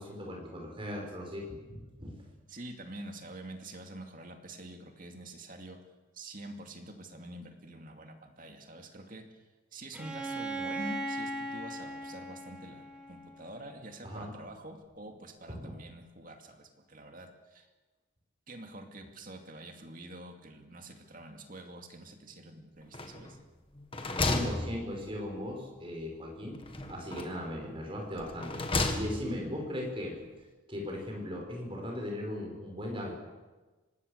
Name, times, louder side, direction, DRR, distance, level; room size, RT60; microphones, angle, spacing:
voice 1, 0.0-2.1 14.0-14.3 15.5-15.7 24.2-26.6 26.9-28.6 28.9-30.2 30.7-33.1, left 1 dB, 25° right, 0 dB, 5.7 m, -38 dB
voice 2, 2.5-5.8 6.1-9.3 9.7-17.7 18.5-23.4, right 1 dB, 40° right, 4 dB, 2.4 m, -46 dB
Bowed string instrument, 9.9-13.7, right 1 dB, 5° right, 2.9 m, -38 dB
sound 1, 22.9-23.4 23.7-25.4 26.6-27.5 28.2-29.4, left 2 dB, 25° left, 1.7 m, -33 dB
25.0 x 19.5 x 6.8 m, 1.2 s
head